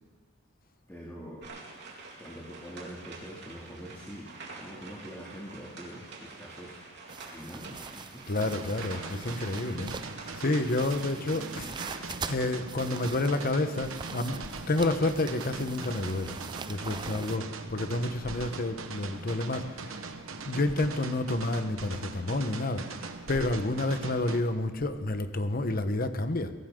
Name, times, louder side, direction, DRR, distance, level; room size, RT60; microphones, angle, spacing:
voice 1, 0.9-1.5 2.2-6.8 7.3-8.2 8.5-8.7 17.0-17.3 23.5-23.7, equal, 10° left, -5 dB, 2.4 m, -44 dB
sound 1, 1.4-11.9, right 3 dB, 60° right, 3.5 m, -47 dB
sound 2, 7.1-17.4, right 5 dB, 20° right, 0.5 m, -43 dB
voice 2, 8.3-10.0 10.4-11.7 12.2-16.4 16.7-17.4 17.7-20.0 20.4-26.5, left 2 dB, 45° left, 9 dB, 1.0 m, -29 dB
sound 3, 8.4-24.4, right 4 dB, 85° right, 1.3 m, -41 dB
22.5 x 17.0 x 3.8 m, 1.4 s
head